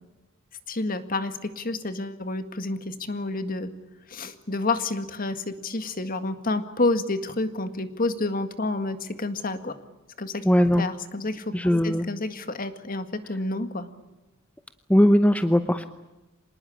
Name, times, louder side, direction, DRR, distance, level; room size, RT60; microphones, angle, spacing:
voice 1, 0.7-3.7 4.1-9.7 10.2-10.4 10.8-11.5 11.8-13.9, left 2 dB, 40° left, 9 dB, 1.9 m, -29 dB
voice 2, 10.4-10.9 11.5-12.1 14.9-15.9, equal, 5° left, 9 dB, 0.7 m, -19 dB
26.5 x 19.5 x 8.8 m, 1.1 s
head